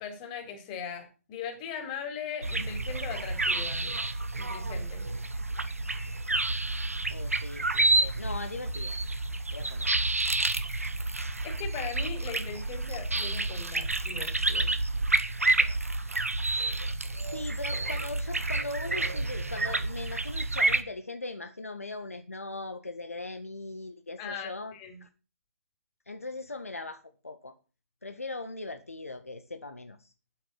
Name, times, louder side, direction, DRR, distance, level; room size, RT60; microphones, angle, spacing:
voice 1, 0.0-4.0 4.4-5.1 11.4-14.7 24.2-25.0, left 7 dB, 30° left, 5 dB, 4.0 m, -39 dB
sound 1, 2.4-20.8, right 2 dB, 80° right, 1.6 m, -29 dB
voice 2, 7.1-9.0 9.5-9.9 17.3-24.7 25.0-25.1 26.1-27.5 28.0-30.1, left 2 dB, 80° left, 8 dB, 1.6 m, -39 dB
9.5 x 8.3 x 8.4 m, 0.35 s
figure-of-eight pair, 130°, 8 cm